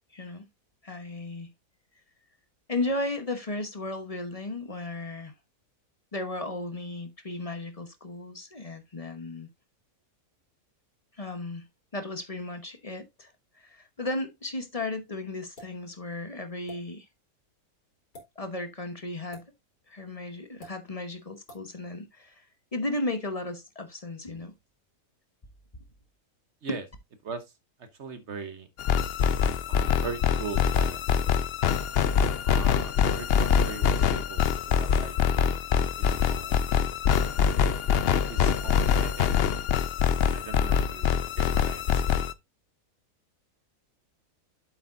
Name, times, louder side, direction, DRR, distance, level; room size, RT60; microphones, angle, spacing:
voice 1, 0.1-0.4 0.8-1.5 2.7-5.3 6.1-9.5 11.2-11.6 11.9-17.1 18.4-19.4 19.9-22.5 22.7-24.5 26.7-26.8, left 2 dB, 25° left, 1.0 m, -35 dB
sound 1, 15.6-15.8 16.7-16.8 18.0-18.3 19.3-19.5 20.6-20.7 21.5-21.6, equal, 85° left, 3.7 m, -46 dB
voice 2, 28.0-28.7 29.7-31.0 32.4-35.2 36.0-36.9 38.3-39.6 40.3-42.3, right 5 dB, 55° right, 1.1 m, -40 dB
sound 2, 28.8-42.3, left 7 dB, 65° left, 0.6 m, -24 dB
8.0 x 7.8 x 2.5 m
omnidirectional pair, 1.6 m